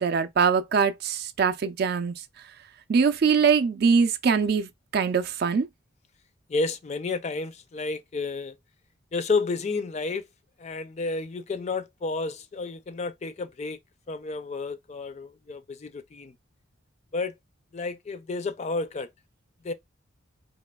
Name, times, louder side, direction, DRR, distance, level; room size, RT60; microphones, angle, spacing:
voice 1, 0.0-2.1 2.9-5.7, right 5 dB, 50° right, 0.4 m, -23 dB
voice 2, 6.5-8.5 9.1-10.2 10.6-13.8 14.1-16.3 17.1-17.3 17.7-19.1 19.6-19.7, left 3 dB, 35° left, 0.3 m, -31 dB
4.1 x 2.9 x 2.2 m
head